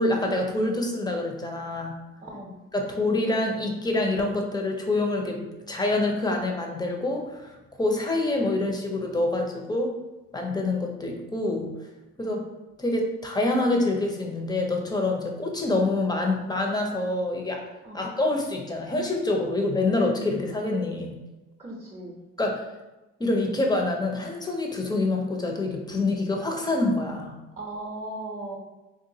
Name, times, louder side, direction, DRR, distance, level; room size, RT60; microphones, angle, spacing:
voice 1, 0.0-2.0 2.7-9.9 10.3-11.7 12.2-12.4 12.8-17.6 17.9-21.2 22.4-22.6 23.2-27.4, left 2 dB, 15° left, 1 dB, 0.6 m, -26 dB
voice 2, 2.2-2.6 12.2-12.4 17.8-18.0 21.6-22.2 27.6-28.6, right 2 dB, 20° right, -5 dB, 0.7 m, -37 dB
3.8 x 2.5 x 2.7 m, 1.1 s
cardioid pair, 90°, 30 cm